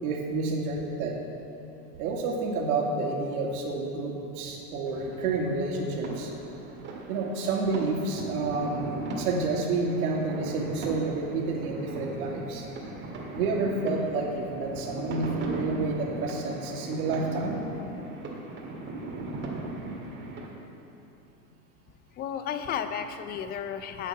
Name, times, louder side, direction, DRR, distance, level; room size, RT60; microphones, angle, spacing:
voice 1, 0.0-1.1 2.0-6.3 7.1-8.9 9.2-12.7 13.3-17.6, right 3 dB, 60° right, -1 dB, 2.5 m, -29 dB
sound 1, 4.9-20.5, right 2 dB, 20° right, 1.9 m, -38 dB
voice 2, 22.1-24.1, left 8 dB, 20° left, 9 dB, 0.5 m, -33 dB
9.9 x 9.8 x 7.3 m, 3.0 s
supercardioid pair, 130°, 48 cm